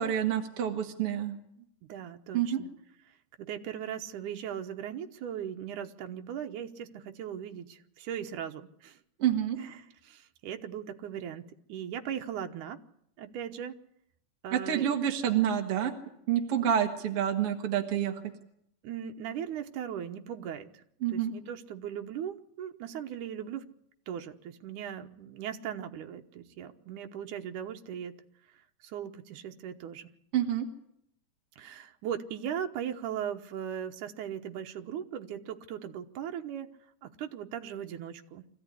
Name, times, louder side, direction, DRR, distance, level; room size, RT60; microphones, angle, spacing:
voice 1, 0.0-1.4 2.3-2.6 9.2-9.6 14.5-15.9 16.3-18.2 21.0-21.3 30.3-30.7, right 10 dB, 50° right, 3 dB, 2.4 m, -28 dB
voice 2, 1.9-2.7 3.4-9.0 9.6-11.4 11.7-12.8 13.2-13.8 14.4-14.9 18.8-20.8 21.1-23.6 24.1-28.2 28.8-30.1 31.6-36.7 37.0-38.4, right 9 dB, 85° right, 5 dB, 2.6 m, -38 dB
24.5 x 15.0 x 9.9 m, 0.74 s
omnidirectional pair, 3.6 m